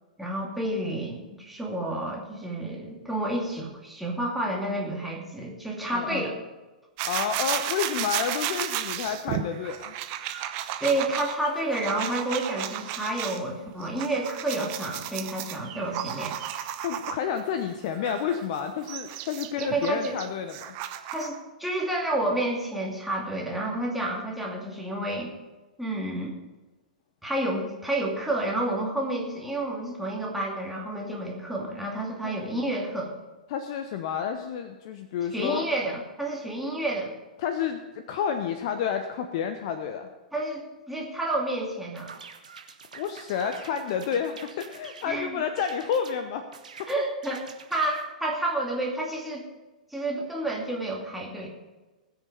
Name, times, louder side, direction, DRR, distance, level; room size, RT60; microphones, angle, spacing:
voice 1, 0.2-6.4 10.8-16.4 19.6-20.2 21.1-25.3 25.8-26.3 27.2-33.1 35.3-37.1 40.3-42.1 45.1-45.4 46.9-47.4 47.7-49.5 49.9-51.5, right 1 dB, ahead, -3 dB, 2.6 m, -30 dB
voice 2, 5.9-6.2 7.0-10.0 16.8-20.8 32.2-32.3 33.5-35.6 37.4-40.1 42.9-46.5 46.8-47.0, left 7 dB, 45° left, 8 dB, 0.8 m, -30 dB
sound 1, 7.0-13.4 13.8-17.4 18.0-21.4, right 11 dB, 35° right, 0.9 m, -34 dB
sound 2, 42.0-45.1 45.6-46.2 46.5-48.1, right 5 dB, 65° right, 1.4 m, -47 dB
20.0 x 6.7 x 5.3 m, 1.2 s
figure-of-eight pair, 105°, 4 cm